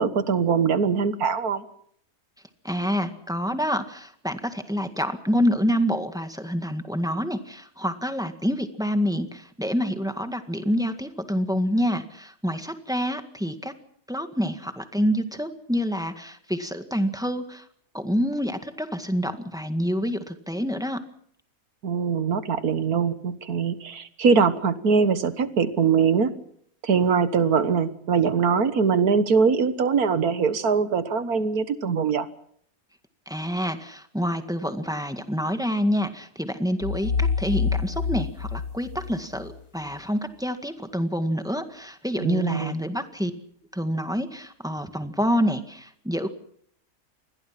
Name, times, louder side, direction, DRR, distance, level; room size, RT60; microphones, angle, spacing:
voice 1, 0.0-1.6 21.8-26.3 26.8-32.3 42.2-42.8, right 5 dB, 85° right, 12 dB, 1.9 m, -22 dB
voice 2, 2.6-13.7 14.1-17.7 17.9-21.0 33.3-43.3 43.7-46.3, equal, 5° right, 7 dB, 1.7 m, -27 dB
sound 1, 36.8-39.6, left 5 dB, 65° left, 1.7 m, -27 dB
27.5 x 21.0 x 5.9 m, 0.67 s
omnidirectional pair, 1.5 m